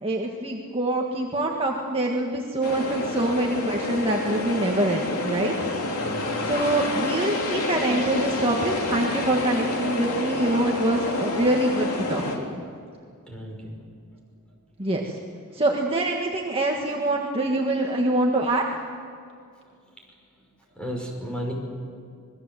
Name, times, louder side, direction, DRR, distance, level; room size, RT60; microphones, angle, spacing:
voice 1, 0.0-5.7 6.5-12.5 14.8-15.2 15.5-18.6, right 1 dB, 25° right, 0 dB, 1.6 m, -25 dB
sound 1, 2.6-12.4, left 2 dB, 80° left, 3.2 m, -28 dB
voice 2, 6.0-6.4 13.3-13.8 20.8-21.5, equal, 5° left, -1 dB, 5.7 m, -34 dB
26.0 x 21.5 x 7.7 m, 2.3 s
head